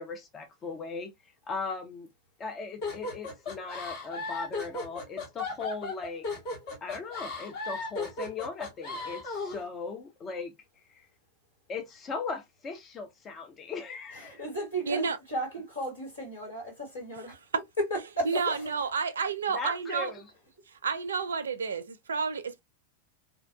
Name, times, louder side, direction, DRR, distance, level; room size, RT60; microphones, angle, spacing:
voice 1, 0.0-2.1 2.4-6.3 6.8-11.1 11.7-14.4 19.5-20.2, left 4 dB, 25° left, 0.4 m, -38 dB
sound 1, 2.8-9.6, left 3 dB, 50° left, 1.1 m, -36 dB
voice 2, 14.1-17.4 17.8-18.7, right 1 dB, 75° left, 1.8 m, -34 dB
voice 3, 14.9-15.2 18.3-20.1 20.7-22.6, right 5 dB, 70° right, 0.4 m, -30 dB
2.7 x 2.1 x 2.3 m
figure-of-eight pair, 90°, 0 cm